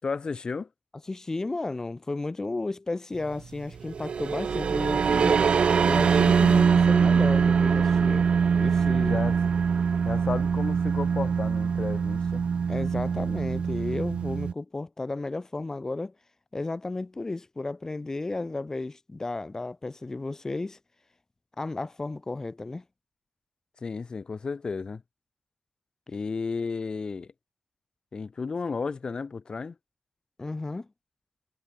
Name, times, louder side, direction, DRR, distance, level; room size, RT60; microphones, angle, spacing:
voice 1, 0.0-0.7 9.0-9.4 10.0-12.5 23.8-25.0 26.1-27.3 28.1-29.8, left 4 dB, 45° left, 5.8 m, -33 dB
voice 2, 1.1-5.4 5.8-8.3 8.5-9.2 12.7-16.1 16.5-20.8 21.6-22.8 30.4-30.9, left 2 dB, 25° left, 7.0 m, -33 dB
sound 1, 3.8-14.5, right 6 dB, 60° right, 3.5 m, -23 dB
wide cardioid pair, 105°, 2 cm